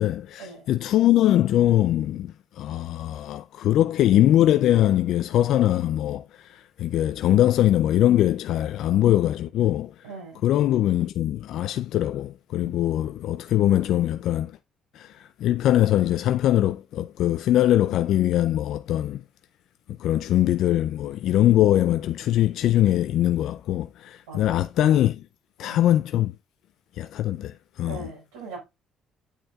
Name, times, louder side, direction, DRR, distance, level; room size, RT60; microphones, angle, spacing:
voice 1, 0.0-10.1 10.4-14.6 14.9-19.2 20.0-25.2 25.6-26.3 27.0-28.1, left 12 dB, 70° left, 0.4 m, -22 dB
voice 2, 10.0-10.4 12.6-12.8 24.3-24.6 25.6-25.8 27.9-28.6, right 3 dB, 90° right, 5.0 m, -40 dB
8.8 x 8.2 x 2.3 m
hypercardioid pair, 60°, 0 cm